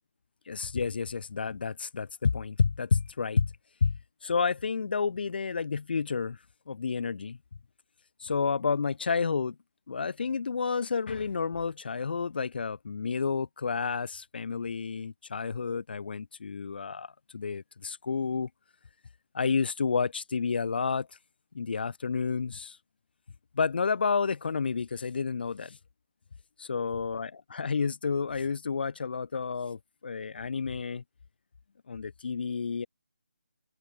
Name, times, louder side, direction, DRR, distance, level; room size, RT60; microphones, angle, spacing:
voice 1, 0.5-3.5 3.8-6.4 6.7-7.4 8.2-9.6 9.9-18.5 19.3-21.1 21.5-22.8 23.5-25.8 26.6-31.0 31.9-32.9, left 5 dB, 50° left, 0.5 m, -30 dB
open air
figure-of-eight pair, 155°, 7 cm